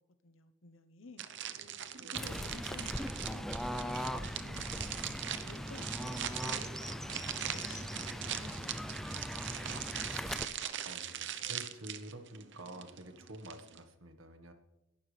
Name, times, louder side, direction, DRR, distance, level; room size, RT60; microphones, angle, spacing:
voice 1, 0.2-1.3 2.1-3.5 4.0-8.0 8.4-9.0, left 3 dB, 75° left, 10 dB, 1.0 m, -55 dB
sound 1, 1.2-13.8, right 9 dB, 60° right, 0.8 m, -41 dB
Fowl / Bird, 2.1-10.4, equal, ahead, 0.5 m, -40 dB
voice 2, 2.2-2.7 7.9-8.7 9.1-9.5 10.8-14.5, right 1 dB, 80° right, 6 dB, 1.5 m, -50 dB
22.0 x 12.0 x 3.4 m, 0.93 s
head